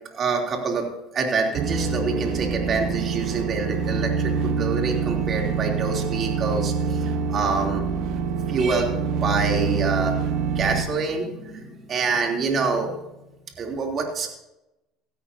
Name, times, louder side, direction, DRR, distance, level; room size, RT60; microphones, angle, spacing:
voice 1, 0.1-7.9 8.5-10.2 10.5-13.0 13.6-14.3, right 4 dB, 40° right, 1 dB, 3.2 m, -26 dB
sound 1, 1.5-10.8, right 5 dB, 65° right, 1.4 m, -26 dB
17.0 x 13.5 x 2.8 m, 0.94 s
supercardioid pair, 110°, 0 cm